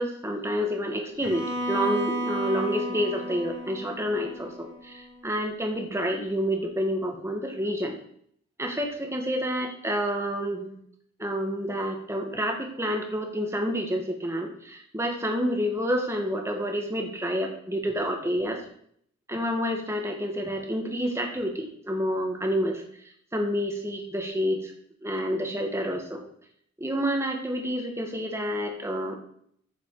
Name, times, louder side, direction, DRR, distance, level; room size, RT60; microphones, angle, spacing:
voice 1, 0.0-8.0 8.6-10.7 11.2-18.6 19.3-22.8 23.3-24.6 25.0-26.2 26.8-29.2, equal, 15° right, 2 dB, 2.2 m, -29 dB
Bowed string instrument, 1.2-5.2, equal, 65° right, 2.6 m, -33 dB
15.0 x 7.5 x 5.1 m, 0.65 s
head